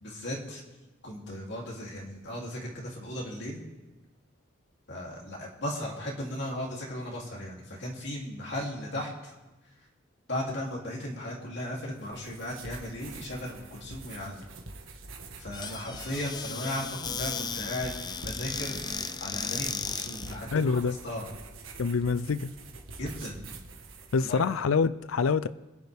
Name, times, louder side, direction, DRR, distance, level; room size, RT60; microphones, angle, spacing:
voice 1, 0.0-0.6 1.0-3.6 4.9-9.3 10.3-14.5 15.4-17.9 18.2-18.8 19.2-20.8 21.0-21.3 23.0-23.4 24.2-24.4, left 1 dB, 60° left, -2 dB, 3.0 m, -36 dB
sound 1, 11.8-24.5, right 3 dB, 80° right, 1.6 m, -45 dB
Squeak / Cupboard open or close, 15.5-20.4, left 6 dB, 20° left, 0.4 m, -35 dB
voice 2, 20.5-21.0 21.8-22.5 24.1-25.5, left 5 dB, 90° left, 15 dB, 0.5 m, -26 dB
26.5 x 10.5 x 3.5 m, 1.1 s
head